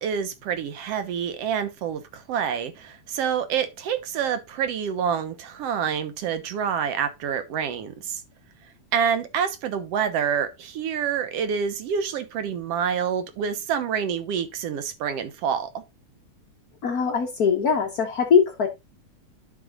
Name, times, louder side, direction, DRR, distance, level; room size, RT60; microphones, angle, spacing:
voice 1, 0.0-8.2 8.9-15.8, right 7 dB, 65° right, 1.8 m, -27 dB
voice 2, 16.8-18.7, left 6 dB, 90° left, 0.8 m, -21 dB
11.0 x 6.2 x 2.4 m
omnidirectional pair, 3.4 m